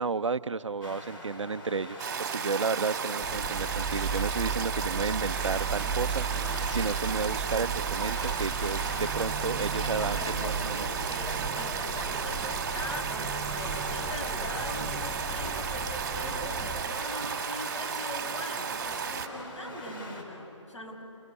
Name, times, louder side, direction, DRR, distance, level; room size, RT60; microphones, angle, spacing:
voice 1, 0.0-10.9, right 4 dB, 70° right, 13 dB, 0.8 m, -32 dB
sound 1, 0.8-20.2, left 1 dB, 45° left, 5.3 m, -44 dB
Stream, 2.0-19.3, right 6 dB, 35° right, 2.7 m, -34 dB
sound 2, 3.2-16.8, right 5 dB, 5° right, 1.0 m, -35 dB
voice 2, 9.7-21.0, left 1 dB, 75° left, 2 dB, 7.0 m, -41 dB
29.0 x 21.0 x 9.8 m, 2.8 s
figure-of-eight pair, 155°, 16 cm